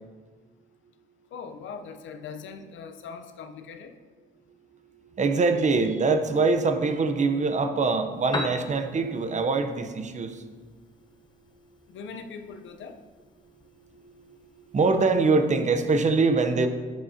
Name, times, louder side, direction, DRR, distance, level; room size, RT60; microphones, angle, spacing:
voice 1, 1.3-3.9 11.9-13.0, left 5 dB, 75° left, 7 dB, 0.7 m, -41 dB
voice 2, 5.2-10.3 14.7-16.7, right 4 dB, 35° right, 8 dB, 0.8 m, -23 dB
Piano, 8.1-16.1, left 2 dB, 20° left, 0.9 m, -42 dB
11.5 x 7.7 x 2.8 m, 1.5 s
cardioid pair, 90°, 20 cm